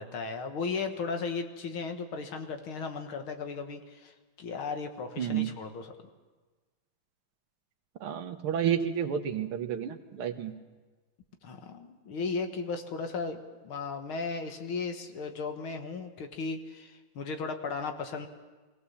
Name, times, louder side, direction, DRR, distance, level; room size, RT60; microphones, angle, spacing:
voice 1, 0.0-5.9 11.4-13.4 13.6-18.3, left 4 dB, 80° left, 6 dB, 2.3 m, -36 dB
voice 2, 5.2-5.5 8.0-10.5, right 9 dB, 85° right, 7 dB, 2.0 m, -30 dB
23.5 x 17.5 x 7.2 m, 1.3 s
omnidirectional pair, 2.3 m